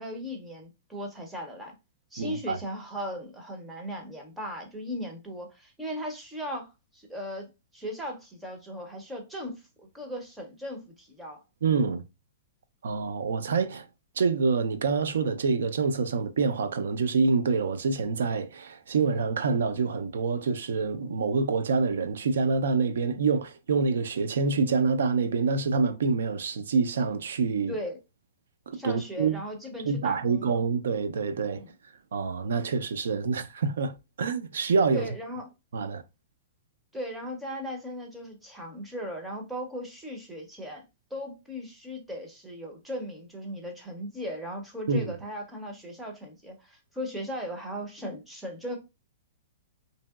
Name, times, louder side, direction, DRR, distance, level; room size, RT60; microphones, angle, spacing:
voice 1, 0.0-1.7 2.1-11.4 27.7-28.0 28.7-30.6 31.5-31.7 34.9-35.5 36.9-40.8 41.1-48.8, equal, 5° right, 0.5 m, -37 dB
voice 2, 2.2-2.6 11.6-12.0 12.8-13.9 14.2-27.7 28.7-29.4 29.8-31.6 32.1-35.1 35.7-36.0 44.9-45.1, right 4 dB, 80° right, 0.4 m, -26 dB
2.9 x 2.7 x 2.2 m
hypercardioid pair, 180°, 0 cm